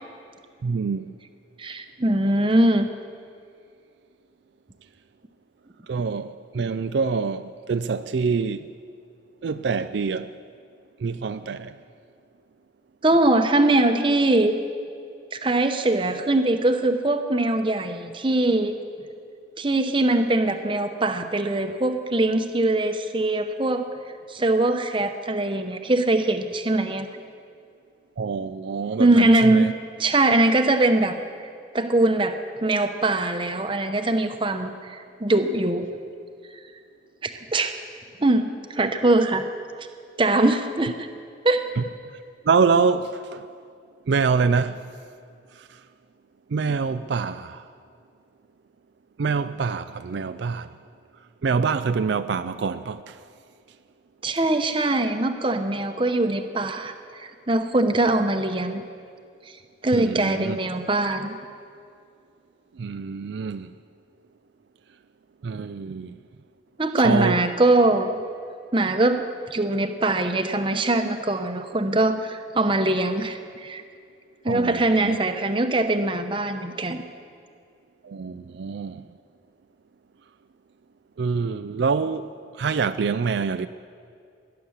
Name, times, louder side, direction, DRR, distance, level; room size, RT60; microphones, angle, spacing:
voice 1, 0.6-1.1 5.9-8.7 9.4-10.3 11.0-11.7 28.2-29.7 41.8-41.9 42.4-43.5 44.1-44.8 45.6-45.7 46.5-47.7 49.2-50.7 51.4-53.2 59.9-60.6 62.8-63.7 65.4-66.2 67.0-67.4 74.5-75.2 78.0-79.1 81.2-83.7, right 5 dB, 70° right, 0.4 m, -25 dB
voice 2, 1.6-2.9 13.0-14.5 15.3-18.7 19.6-23.9 24.3-27.1 29.0-31.2 31.7-35.9 37.2-37.7 38.2-38.4 38.7-39.4 40.2-41.1 41.4-41.6 54.2-58.8 59.8-61.4 66.8-68.1 68.7-73.8 74.4-77.0, right 2 dB, 25° right, 0.8 m, -22 dB
18.0 x 10.5 x 7.3 m
head